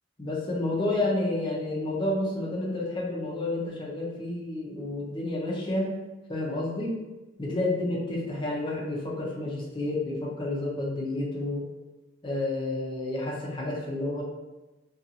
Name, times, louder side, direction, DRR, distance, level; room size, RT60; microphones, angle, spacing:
voice 1, 0.2-5.9 6.3-6.9 7.4-11.7 12.2-14.2, left 2 dB, 25° left, -4 dB, 0.6 m, -30 dB
2.6 x 2.3 x 2.7 m, 1.1 s
head